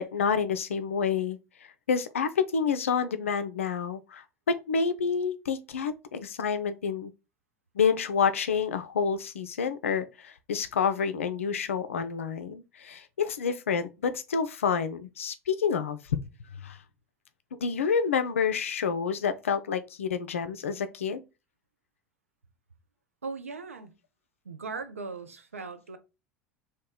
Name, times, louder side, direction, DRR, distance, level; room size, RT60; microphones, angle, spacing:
voice 1, 0.0-7.1 7.8-16.0 16.5-16.8 17.5-21.2, left 6 dB, 70° left, 0.4 m, -28 dB
voice 2, 23.2-24.0 24.4-26.0, right 4 dB, 80° right, 0.5 m, -38 dB
2.9 x 2.2 x 3.6 m
figure-of-eight pair, 75°, 7 cm